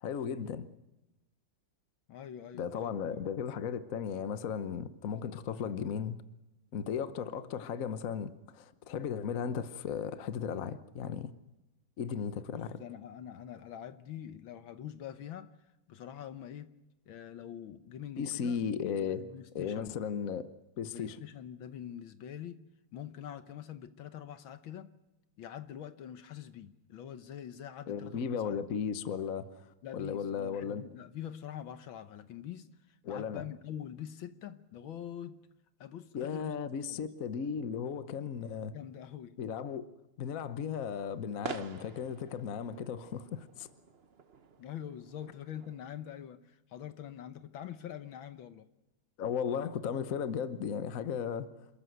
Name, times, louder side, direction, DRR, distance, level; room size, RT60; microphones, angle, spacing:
voice 1, 0.0-0.7 2.5-6.2 6.7-11.3 12.0-12.8 18.2-19.2 19.5-20.5 20.8-21.2 27.9-30.8 33.0-33.4 36.1-38.7 39.4-39.8 40.2-43.7 49.2-51.7, left 7 dB, 50° left, 1.1 m, -36 dB
voice 2, 2.1-3.2 12.5-15.5 15.9-16.7 17.1-18.6 19.0-20.0 20.8-22.6 22.9-24.9 25.4-28.6 29.8-35.4 35.8-37.0 38.1-38.2 38.7-39.3 44.6-48.7, left 10 dB, 70° left, 1.7 m, -45 dB
sound 1, 40.7-45.8, right 5 dB, 45° right, 0.8 m, -48 dB
27.5 x 14.0 x 8.0 m
omnidirectional pair, 2.4 m